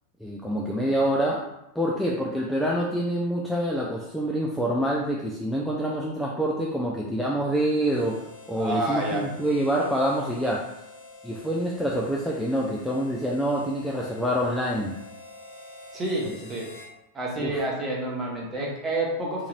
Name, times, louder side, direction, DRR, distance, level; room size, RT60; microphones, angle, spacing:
voice 1, 0.2-1.5 1.7-10.7 11.2-15.0 16.2-16.3 17.4-17.6, equal, ahead, -3 dB, 0.4 m, -26 dB
Harmonica, 7.8-16.9, left 2 dB, 60° left, 0.8 m, -47 dB
voice 2, 8.5-9.2 15.9-16.7 17.1-19.5, right 1 dB, 20° right, -2 dB, 1.0 m, -29 dB
3.8 x 3.0 x 2.4 m, 0.86 s
figure-of-eight pair, 90°, 0 cm